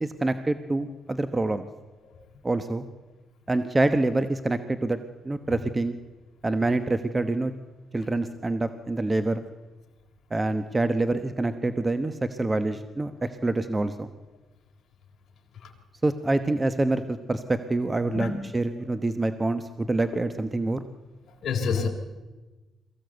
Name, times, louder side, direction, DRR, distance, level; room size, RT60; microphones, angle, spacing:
voice 1, 0.0-1.7 2.4-2.8 3.5-5.0 5.2-6.0 6.4-7.5 7.9-9.4 10.3-14.1 16.0-20.8, right 2 dB, 20° right, 10 dB, 1.0 m, -26 dB
voice 2, 21.2-21.9, left 5 dB, 60° left, 2 dB, 3.6 m, -29 dB
22.5 x 15.5 x 8.0 m, 1.2 s
cardioid pair, 95°, 0 cm